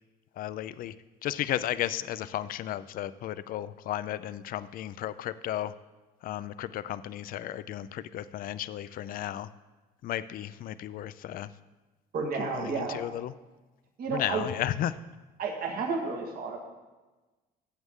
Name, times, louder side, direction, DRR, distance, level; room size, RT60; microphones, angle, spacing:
voice 1, 0.4-0.9 1.2-5.7 6.2-9.5 10.0-11.5 12.4-13.3 14.1-15.0, left 12 dB, 55° left, 15 dB, 0.4 m, -34 dB
voice 2, 12.1-13.0 14.0-14.4 15.4-16.6, right 4 dB, 60° right, 1 dB, 1.6 m, -31 dB
14.5 x 8.0 x 3.7 m, 1.2 s
cardioid pair, 110°, 17 cm